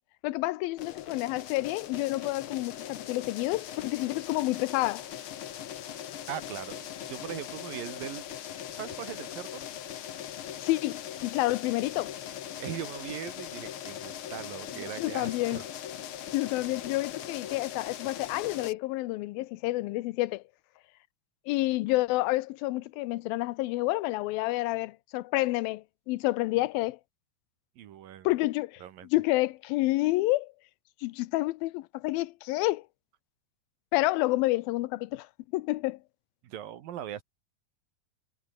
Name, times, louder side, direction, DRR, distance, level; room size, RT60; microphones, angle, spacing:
voice 1, 0.2-5.1 10.6-12.1 15.0-15.6 16.3-20.4 21.5-27.0 28.2-28.8 29.1-30.5 31.0-32.8 33.9-35.3 35.5-36.0, left 19 dB, 85° left, 2.5 m, -29 dB
sound 1, 0.8-18.7, left 10 dB, 65° left, 1.3 m, -40 dB
voice 2, 6.3-8.3 8.7-9.6 12.6-15.6 27.8-28.3 28.8-29.1 36.4-37.2, right 11 dB, 75° right, 3.3 m, -40 dB
omnidirectional pair, 4.1 m